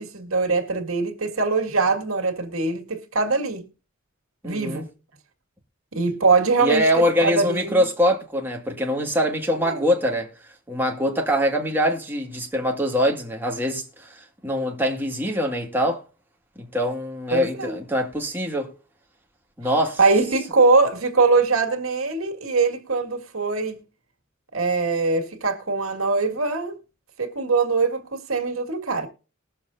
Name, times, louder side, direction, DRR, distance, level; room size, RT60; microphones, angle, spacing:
voice 1, 0.0-3.6 4.4-4.9 5.9-7.9 9.6-9.8 17.3-17.8 20.0-23.8 24.5-26.8 27.2-29.1, right 4 dB, 80° right, 2.0 m, -22 dB
voice 2, 4.4-4.9 6.6-10.3 10.7-16.0 16.6-18.7 19.6-20.0, equal, 10° right, 1.9 m, -23 dB
20.5 x 7.0 x 2.6 m
head